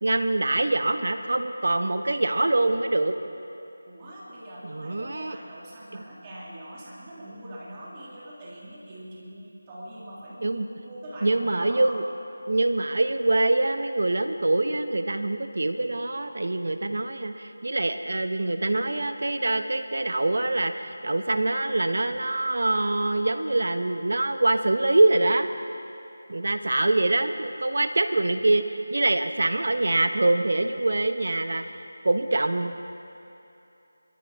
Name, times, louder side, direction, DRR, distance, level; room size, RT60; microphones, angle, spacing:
voice 1, 0.0-3.1 4.6-5.4 10.4-10.7 11.2-12.0 12.5-25.5 26.3-31.7 32.0-32.9, right 2 dB, 65° right, 8 dB, 1.0 m, -24 dB
voice 2, 3.8-12.0 26.7-26.9, right 1 dB, 20° right, -6 dB, 2.2 m, -42 dB
24.5 x 13.5 x 3.5 m, 2.9 s
figure-of-eight pair, 165°, 0 cm